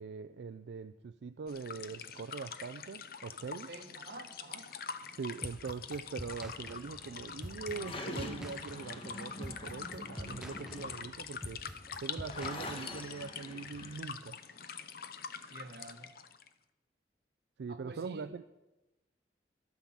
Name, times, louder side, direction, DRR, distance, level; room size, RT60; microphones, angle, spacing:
voice 1, 0.0-3.7 5.1-11.6 12.0-14.4 17.6-18.5, right 5 dB, 80° right, 11 dB, 0.4 m, -42 dB
sound 1, 1.5-16.5, left 7 dB, 55° left, 0.7 m, -45 dB
voice 2, 3.5-4.7 15.5-16.1 17.7-18.3, right 2 dB, 60° right, 5 dB, 1.3 m, -49 dB
sound 2, 5.4-13.2, equal, 5° right, 0.8 m, -46 dB
sound 3, 6.2-14.0, left 2 dB, 30° left, 1.2 m, -46 dB
11.5 x 9.1 x 7.3 m, 1.1 s
head